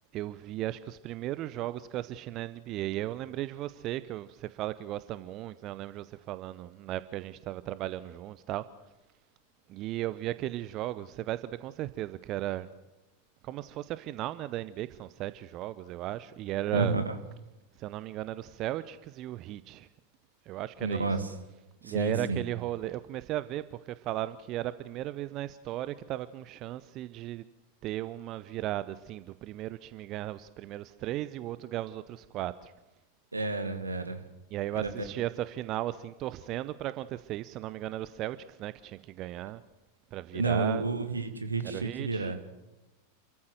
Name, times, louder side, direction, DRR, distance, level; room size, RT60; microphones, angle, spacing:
voice 1, 0.1-8.7 9.7-12.7 13.4-17.0 17.8-19.9 20.5-21.1 21.8-27.4 27.8-32.7 34.5-39.6 40.1-40.9 41.6-42.5, right 14 dB, 35° right, 0.7 m, -36 dB
voice 2, 16.7-17.1 20.8-21.3 21.8-22.4 33.3-34.2 34.7-34.9 40.3-42.4, right 3 dB, 80° right, 2.2 m, -30 dB
28.5 x 14.5 x 7.8 m
figure-of-eight pair, 90°, 0 cm